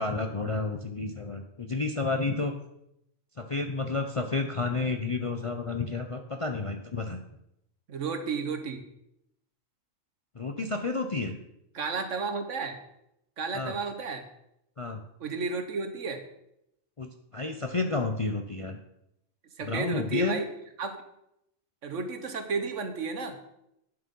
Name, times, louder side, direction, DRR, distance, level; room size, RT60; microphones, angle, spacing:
voice 1, 0.0-2.5 3.4-7.2 10.4-11.4 13.5-13.7 14.8-15.0 17.0-18.8 19.6-20.4, left 3 dB, 35° left, 5 dB, 0.5 m, -31 dB
voice 2, 7.9-8.8 11.7-12.8 13.4-14.2 15.2-16.2 19.6-20.5 20.8-21.0 21.8-23.4, right 4 dB, 65° right, 6 dB, 1.5 m, -32 dB
9.0 x 7.3 x 5.4 m, 0.81 s
omnidirectional pair, 1.4 m